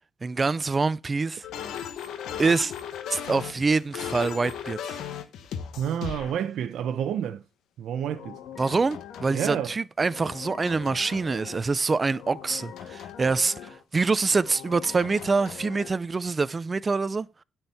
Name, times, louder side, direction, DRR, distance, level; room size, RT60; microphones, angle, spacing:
voice 1, 0.2-1.4 2.4-2.7 3.1-5.0 8.6-17.3, right 4 dB, 30° right, 0.6 m, -25 dB
sound 1, 1.4-6.3 8.1-9.7 10.0-11.7 12.1-13.8 14.3-15.9, left 9 dB, 80° left, 1.2 m, -38 dB
voice 2, 5.8-7.4 7.8-8.4 9.3-9.7, right 9 dB, 75° right, 0.8 m, -29 dB
9.9 x 4.6 x 6.9 m
cardioid pair, 90°, 0 cm